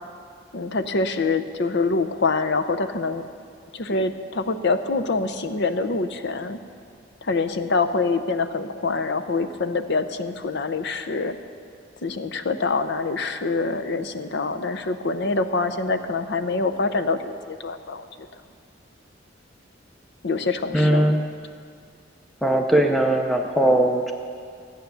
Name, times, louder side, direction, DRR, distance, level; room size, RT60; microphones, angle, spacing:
voice 1, 0.5-3.2 3.7-6.6 7.2-11.4 12.0-18.3 20.2-21.1, left 3 dB, 60° left, 10 dB, 0.7 m, -25 dB
voice 2, 20.7-21.2 22.4-24.1, right 1 dB, ahead, 3 dB, 0.5 m, -19 dB
15.0 x 9.2 x 6.8 m, 2.3 s
head